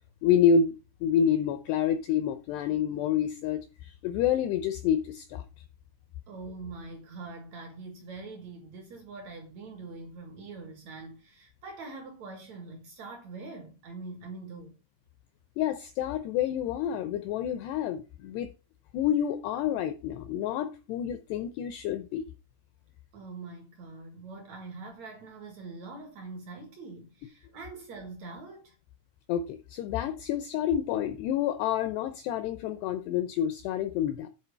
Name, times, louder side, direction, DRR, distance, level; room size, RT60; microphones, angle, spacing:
voice 1, 0.2-0.8 1.0-5.4 15.6-18.5 18.9-22.2 29.3-34.3, left 8 dB, 90° left, 2.3 m, -28 dB
voice 2, 6.3-14.7 23.1-28.7, right 3 dB, 80° right, 1.5 m, -43 dB
10.0 x 4.6 x 6.7 m
omnidirectional pair, 5.7 m